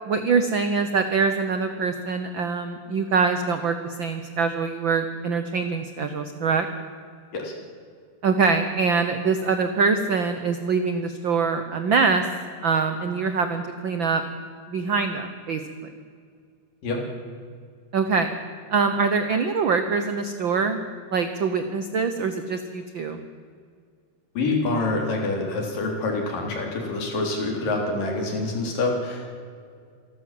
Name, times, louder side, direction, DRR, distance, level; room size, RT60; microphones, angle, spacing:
voice 1, 0.1-6.7 8.2-12.3 12.6-14.2 14.7-15.6 17.9-18.3 18.7-20.8 21.1-23.2, right 5 dB, 90° right, 8 dB, 1.0 m, -24 dB
voice 2, 24.4-29.2, left 2 dB, 85° left, 1 dB, 5.3 m, -26 dB
27.5 x 12.5 x 7.6 m, 2.1 s
omnidirectional pair, 3.8 m